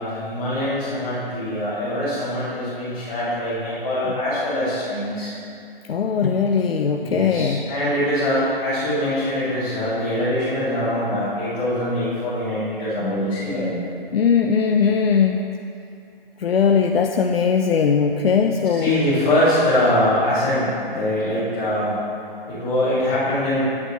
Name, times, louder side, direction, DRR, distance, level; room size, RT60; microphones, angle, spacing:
voice 1, 0.0-5.3 7.0-13.8 18.6-22.0 22.5-23.6, left 1 dB, 10° left, -13 dB, 0.7 m, -23 dB
voice 2, 5.9-7.6 14.1-15.5 16.4-18.9, left 6 dB, 80° left, 3 dB, 0.5 m, -19 dB
9.5 x 6.2 x 3.0 m, 2.6 s
hypercardioid pair, 165°, 29 cm